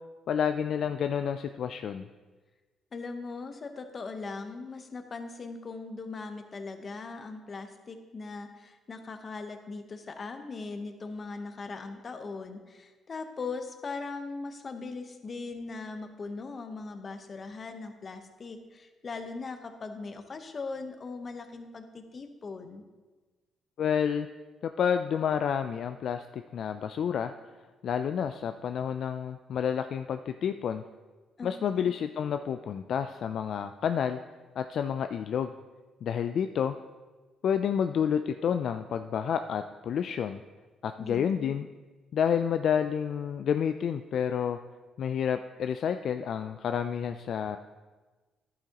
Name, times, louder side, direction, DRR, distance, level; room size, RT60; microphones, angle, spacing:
voice 1, 0.3-2.1 23.8-24.3 24.6-27.3 27.8-30.8 31.4-34.2 34.6-35.5 36.0-36.8 37.4-40.4 40.8-41.7 42.1-44.6 45.0-47.6, left 8 dB, 65° left, 8 dB, 0.3 m, -29 dB
voice 2, 2.9-22.8 31.4-31.9 41.0-41.6, left 4 dB, 40° left, 7 dB, 0.9 m, -40 dB
11.0 x 8.8 x 2.9 m, 1.3 s
cardioid pair, 90°, 0 cm